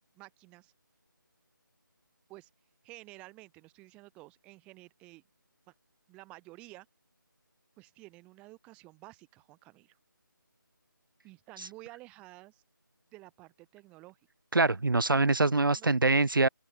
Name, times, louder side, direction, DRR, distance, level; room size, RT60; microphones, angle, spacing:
voice 1, 0.1-0.7 2.3-2.5 2.8-5.2 5.7-5.8 6.1-6.9 7.8-10.0 11.2-12.6 13.1-14.2 15.5-15.9, right 21 dB, 10° right, 7.7 m, -52 dB
voice 2, 14.5-16.5, right 3 dB, 75° right, 0.7 m, -24 dB
open air
figure-of-eight pair, 160°, 11 cm